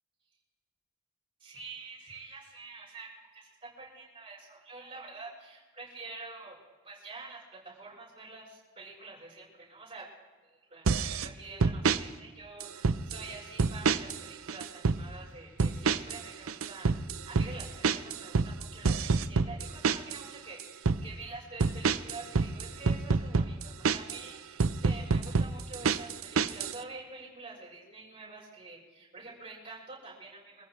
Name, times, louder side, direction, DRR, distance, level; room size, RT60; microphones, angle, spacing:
voice 1, 1.4-6.6 6.8-10.1 10.4-30.6, right 3 dB, 25° right, -4 dB, 6.9 m, -47 dB
sound 1, 10.9-11.3 11.6-12.0 12.6-13.2 13.6-14.2 14.5-15.0 15.6-16.2 16.5-20.2 20.6-21.0 21.6-24.2 24.6-26.8, right 4 dB, 85° right, 0.6 m, -27 dB
27.0 x 15.0 x 3.3 m, 1.3 s
head